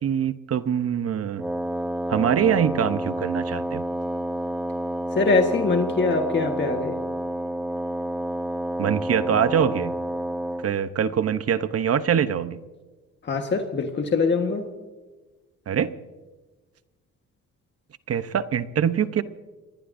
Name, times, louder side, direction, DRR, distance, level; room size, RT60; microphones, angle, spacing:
voice 1, 0.0-1.4 2.1-3.8 8.8-10.0 10.6-12.6 15.7-15.9 18.1-19.2, right 8 dB, 50° right, 12 dB, 0.9 m, -24 dB
Wind instrument woodwind instrument, 1.4-10.7, right 1 dB, 5° right, 0.8 m, -29 dB
voice 2, 5.1-7.0 13.2-14.6, left 4 dB, 35° left, 4 dB, 1.5 m, -23 dB
27.0 x 20.5 x 2.6 m, 1.3 s
cardioid pair, 90°, 30 cm